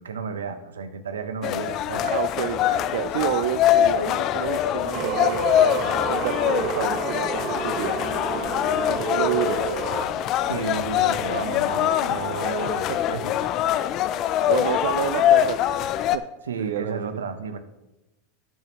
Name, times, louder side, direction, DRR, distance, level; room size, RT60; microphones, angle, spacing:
voice 1, 0.0-2.1 10.4-13.4 16.4-17.6, right 5 dB, 85° right, 10 dB, 0.9 m, -32 dB
sound 1, 1.4-16.2, left 11 dB, 45° left, 0.5 m, -23 dB
voice 2, 2.0-5.4 6.1-8.0 8.3-8.6 8.9-9.7 12.7-13.0 14.0-14.1 14.5-16.3 16.6-17.1, right 13 dB, 70° right, 12 dB, 0.3 m, -30 dB
Singing, 4.9-10.1, right 6 dB, 55° right, 1.2 m, -30 dB
12.5 x 9.1 x 3.0 m, 0.99 s
hypercardioid pair, 95°, 0 cm